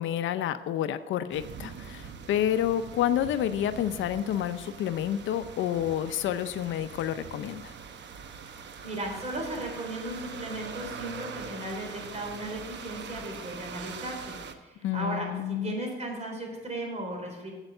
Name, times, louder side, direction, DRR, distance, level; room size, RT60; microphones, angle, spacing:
voice 1, 0.0-7.7 14.8-15.8, left 11 dB, 75° left, 11 dB, 0.6 m, -29 dB
sound 1, 1.3-14.5, right 6 dB, 65° right, 0.9 m, -43 dB
voice 2, 8.5-17.5, right 1 dB, 35° right, 1 dB, 3.7 m, -36 dB
8.1 x 8.1 x 6.6 m, 1.2 s
cardioid pair, 90°, 20 cm